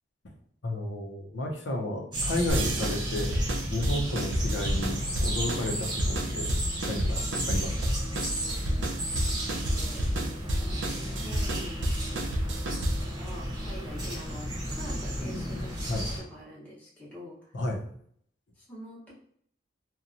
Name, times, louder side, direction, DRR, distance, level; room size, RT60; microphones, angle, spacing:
voice 1, 0.6-3.4 3.7-6.5 6.9-7.9 15.9-16.0 17.5-17.8, left 1 dB, 80° left, 1 dB, 0.6 m, -32 dB
sound 1, 2.1-16.2, equal, 25° right, 0.7 m, -33 dB
sound 2, 2.5-13.2, right 1 dB, 80° right, 0.5 m, -30 dB
voice 2, 9.5-10.1 10.4-12.6 13.0-17.5 18.6-19.1, left 1 dB, 10° left, -6 dB, 0.8 m, -45 dB
2.8 x 2.2 x 2.5 m, 0.64 s
head